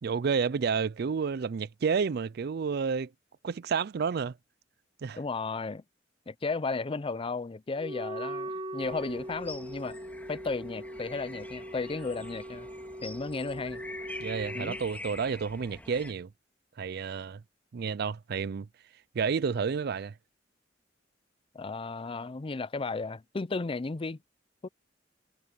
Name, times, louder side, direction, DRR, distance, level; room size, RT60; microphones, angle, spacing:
voice 1, 0.0-3.1 3.4-4.3 5.0-5.2 14.2-16.3 16.8-17.4 17.7-18.7 19.1-20.1, right 6 dB, 60° right, 0.4 m, -30 dB
voice 2, 5.2-5.8 6.3-10.0 10.3-12.7 13.0-13.8 14.5-14.8 21.5-24.2 24.6-24.7, left 3 dB, 30° left, 0.5 m, -34 dB
Wind instrument woodwind instrument, 7.8-14.8, right 1 dB, 30° right, 2.7 m, -40 dB
sound 1, 8.8-16.1, left 2 dB, 10° left, 2.7 m, -45 dB
head